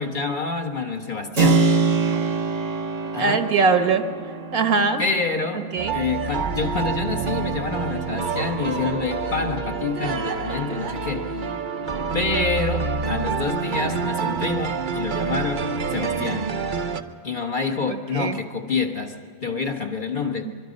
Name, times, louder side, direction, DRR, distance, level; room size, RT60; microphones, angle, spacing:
voice 1, 0.0-1.7 3.1-3.5 5.0-11.3 12.1-16.5 17.2-19.1 19.4-20.5, left 4 dB, 35° left, 3 dB, 1.5 m, -27 dB
Keyboard (musical), 1.4-9.9, right 4 dB, 60° right, 1.4 m, -26 dB
voice 2, 3.2-4.0 4.5-5.0 5.7-6.0 17.9-18.4 20.4-20.5, right 4 dB, 80° right, 7 dB, 1.8 m, -21 dB
sound 1, 5.8-17.0, right 5 dB, 40° right, 0.8 m, -27 dB
24.5 x 23.0 x 5.3 m, 2.2 s
omnidirectional pair, 1.5 m